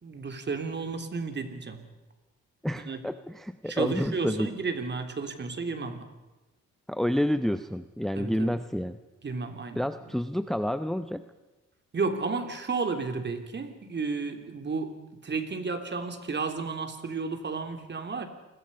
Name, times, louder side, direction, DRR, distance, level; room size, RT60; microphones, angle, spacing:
voice 1, 0.0-1.9 2.9-3.0 3.6-6.1 8.2-8.6 9.2-9.8 11.9-18.2, right 4 dB, 35° right, 7 dB, 3.3 m, -32 dB
voice 2, 2.6-4.5 6.9-9.0 9.8-11.3, equal, ahead, 11 dB, 0.8 m, -29 dB
28.5 x 21.5 x 5.5 m, 1.1 s
cardioid pair, 90°, 30 cm